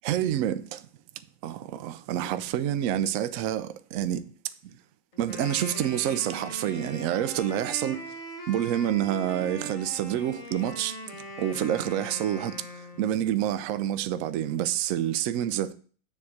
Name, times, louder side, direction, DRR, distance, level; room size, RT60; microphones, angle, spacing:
voice 1, 0.0-0.9 1.4-4.2 5.2-8.0 8.5-12.6 13.0-15.7, right 11 dB, 75° right, 0.7 m, -28 dB
Wind instrument woodwind instrument, 5.1-13.3, equal, 50° left, 1.8 m, -41 dB
7.0 x 3.6 x 6.2 m
omnidirectional pair, 1.9 m